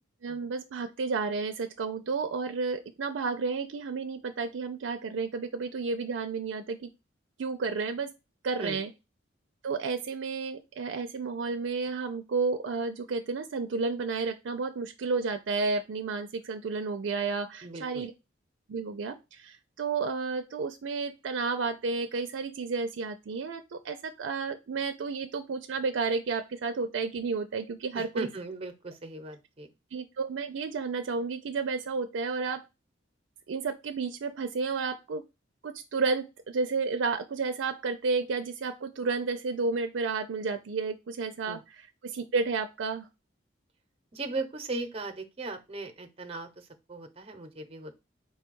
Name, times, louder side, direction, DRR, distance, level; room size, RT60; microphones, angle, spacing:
voice 1, 0.2-6.9 7.4-8.1 8.4-8.9 9.6-18.1 18.7-28.3 29.9-32.6 33.5-35.2 35.6-41.6 42.0-43.1, right 4 dB, 80° right, 7 dB, 0.4 m, -31 dB
voice 2, 17.6-18.1 27.9-29.7 41.4-41.6 44.1-48.0, right 2 dB, 30° right, 6 dB, 0.7 m, -38 dB
4.4 x 2.3 x 4.5 m, 0.25 s
head